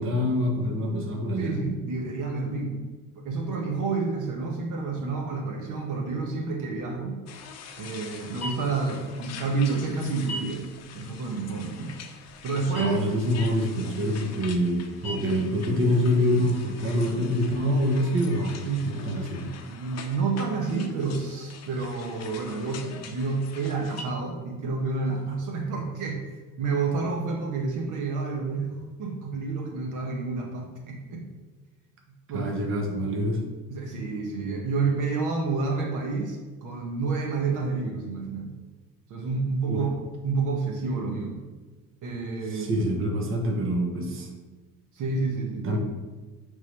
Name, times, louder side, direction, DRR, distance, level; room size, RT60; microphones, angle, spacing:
voice 1, 0.0-1.6 12.8-19.4 32.3-33.4 39.7-39.8 42.5-44.3 45.6-45.8, equal, 35° right, 1 dB, 1.0 m, -26 dB
voice 2, 1.4-2.8 3.2-7.2 7.8-12.0 12.4-12.9 18.6-19.0 19.4-26.2 26.6-31.3 32.3-32.5 33.7-38.5 39.1-39.9 40.2-41.4 42.0-42.8 44.9-45.7, right 4 dB, 60° right, 1 dB, 1.0 m, -29 dB
sound 1, 7.3-24.0, left 4 dB, 50° left, 0.7 m, -43 dB
8.2 x 3.7 x 3.3 m, 1.3 s
cardioid pair, 140°, 35 cm